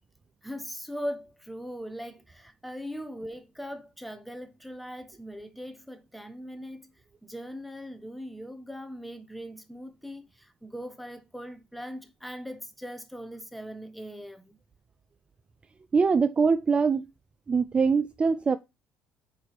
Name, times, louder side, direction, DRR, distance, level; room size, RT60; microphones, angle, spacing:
voice 1, 0.4-6.9 7.2-14.6, equal, ahead, 1.1 m, -40 dB
voice 2, 15.9-17.1 17.5-18.6, right 5 dB, 30° right, 0.4 m, -23 dB
4.9 x 4.5 x 4.6 m
supercardioid pair, 70°, 4 cm